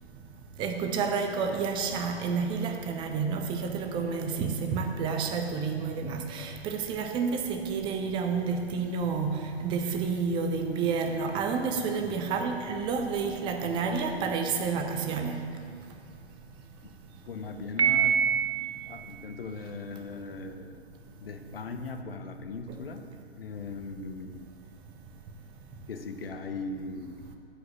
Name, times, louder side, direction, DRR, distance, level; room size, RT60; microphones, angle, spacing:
voice 1, 0.6-15.4, right 5 dB, 15° right, 4 dB, 0.6 m, -30 dB
voice 2, 17.2-20.8 21.2-23.0 23.4-24.5 25.9-27.2, left 3 dB, 65° left, 6 dB, 1.1 m, -39 dB
Piano, 17.8-18.9, right 8 dB, 85° right, 1.0 m, -25 dB
12.0 x 5.1 x 7.1 m, 2.3 s
figure-of-eight pair, 120°, 32 cm